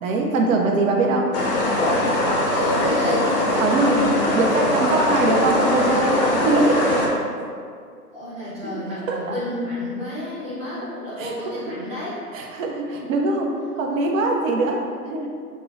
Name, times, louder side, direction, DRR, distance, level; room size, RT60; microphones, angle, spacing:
voice 1, 0.0-1.3 3.6-4.1 4.3-7.1 9.1-9.2 11.2-11.3 11.7-11.8 12.3-14.8 15.1-15.3, right 2 dB, 55° right, 0 dB, 0.6 m, -22 dB
voice 2, 0.6-1.1 2.4-3.4 3.8-4.4 4.8-5.1 8.1-12.2 13.0-13.3, left 1 dB, 10° right, -14 dB, 0.5 m, -31 dB
sound 1, 1.3-7.1, left 1 dB, 35° left, 0.6 m, -21 dB
5.4 x 2.0 x 2.4 m, 2.2 s
hypercardioid pair, 150°, 47 cm